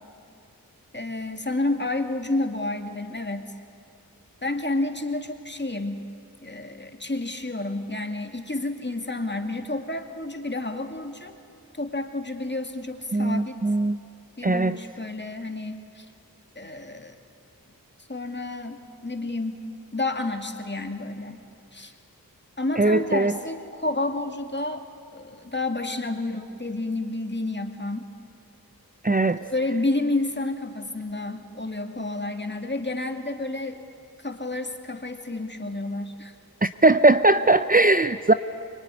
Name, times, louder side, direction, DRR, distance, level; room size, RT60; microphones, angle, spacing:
voice 1, 0.9-3.6 4.4-6.1 6.4-11.4 11.7-13.6 14.4-16.1 16.6-17.2 18.1-19.6 19.9-21.4 21.7-21.9 22.6-24.8 25.1-28.0 29.1-33.8 34.2-36.3, left 2 dB, 30° left, 5 dB, 2.3 m, -30 dB
voice 2, 13.1-14.0 14.4-14.8 22.8-23.3 29.0-29.4 36.6-38.3, right 2 dB, 25° right, 11 dB, 0.6 m, -19 dB
24.0 x 24.0 x 9.9 m, 2.5 s
wide cardioid pair, 50°, 36 cm